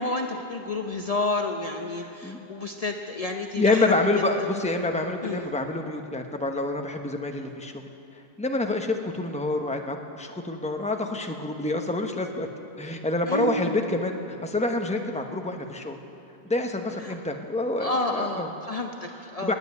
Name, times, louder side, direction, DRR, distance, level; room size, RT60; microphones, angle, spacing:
voice 1, 0.0-3.9 5.2-5.4 13.3-13.7 17.0-17.2 17.8-19.5, left 2 dB, 40° left, 3 dB, 0.8 m, -30 dB
voice 2, 1.9-2.4 3.6-7.8 8.4-12.5 12.8-16.0 16.4-18.5 19.4-19.5, left 2 dB, 5° left, 4 dB, 1.0 m, -27 dB
19.0 x 7.9 x 9.6 m, 2.9 s
omnidirectional pair, 1.0 m